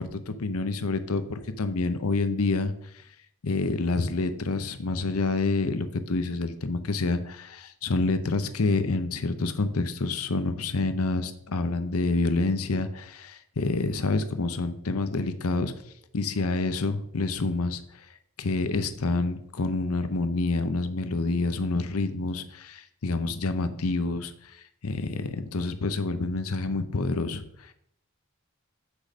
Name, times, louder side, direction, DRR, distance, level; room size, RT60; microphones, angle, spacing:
voice 1, 0.0-3.0 3.4-15.7 16.1-17.8 18.4-27.7, left 3 dB, 90° left, 10 dB, 0.8 m, -28 dB
6.3 x 5.1 x 6.2 m, 0.71 s
head